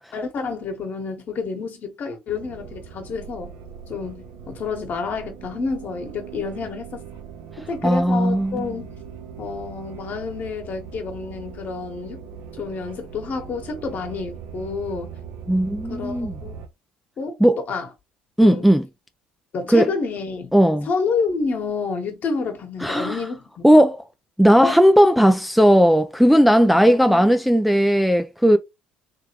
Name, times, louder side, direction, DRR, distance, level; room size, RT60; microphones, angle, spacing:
voice 1, 0.1-3.5 3.9-7.1 7.7-8.9 9.4-12.3 12.6-15.1 15.9-16.5 17.2-17.4 17.7-17.9 18.4-18.6 19.5-20.5 20.9-23.9 24.6-24.7 26.9-27.2, left 4 dB, 50° left, 1.4 m, -29 dB
sound 1, 2.3-16.7, right 7 dB, 65° right, 0.6 m, -40 dB
voice 2, 7.8-8.7 15.5-16.3 17.4-17.6 18.4-18.8 19.7-19.9 20.5-20.9 22.8-23.2 23.6-24.0 24.4-28.6, equal, ahead, 0.4 m, -16 dB
3.4 x 3.2 x 3.1 m
hypercardioid pair, 60°, 4 cm